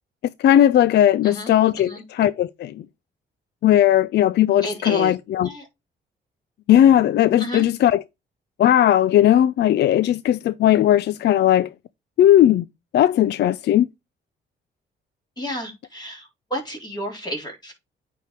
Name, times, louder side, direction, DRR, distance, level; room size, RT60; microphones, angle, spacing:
voice 1, 0.4-2.7 3.6-5.5 6.7-8.0 8.6-11.7 12.2-12.6 12.9-13.9, left 11 dB, 60° left, 0.4 m, -17 dB
voice 2, 1.2-2.0 4.6-5.1 5.4-5.7 7.4-7.7 15.4-17.7, equal, 20° left, 3.7 m, -32 dB
9.1 x 3.5 x 4.4 m
cardioid pair, 90°, 20 cm